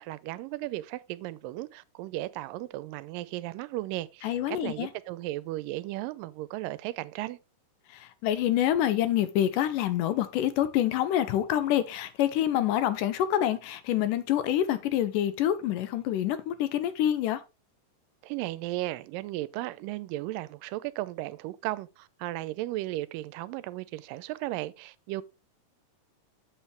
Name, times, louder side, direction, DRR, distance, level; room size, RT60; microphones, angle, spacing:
voice 1, 0.0-7.4 18.2-25.2, right 17 dB, 85° right, 2.2 m, -35 dB
voice 2, 4.2-4.9 7.9-17.4, left 11 dB, 80° left, 2.3 m, -27 dB
7.5 x 7.4 x 3.2 m
omnidirectional pair, 3.9 m